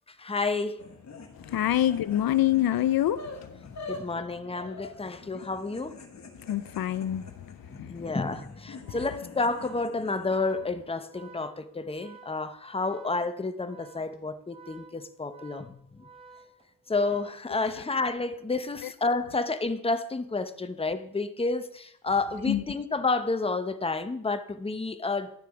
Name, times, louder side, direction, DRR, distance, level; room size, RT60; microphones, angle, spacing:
voice 1, 0.1-0.8 3.6-6.0 7.7-16.0 16.9-25.3, left 3 dB, 15° left, 0.8 m, -30 dB
sound 1, 0.8-10.9, left 3 dB, 50° left, 1.6 m, -45 dB
voice 2, 1.4-3.5 6.4-7.3 7.8-8.1 18.8-18.9 22.5-22.6, left 12 dB, 75° left, 0.6 m, -26 dB
Organ, 8.8-17.9, right 4 dB, 15° right, 1.4 m, -53 dB
11.5 x 6.8 x 4.8 m
cardioid pair, 105°, 36 cm